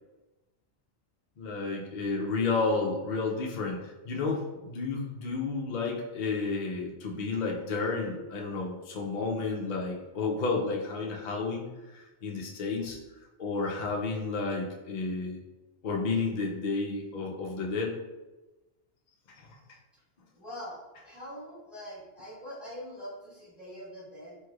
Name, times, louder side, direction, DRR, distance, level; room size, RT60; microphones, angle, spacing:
voice 1, 1.4-11.7 11.9-13.0 13.4-15.4 15.8-18.0 19.4-19.6, left 4 dB, 60° left, -1 dB, 0.4 m, -31 dB
voice 2, 20.3-24.4, equal, ahead, -10 dB, 1.3 m, -43 dB
3.1 x 3.1 x 2.3 m, 1.1 s
omnidirectional pair, 1.2 m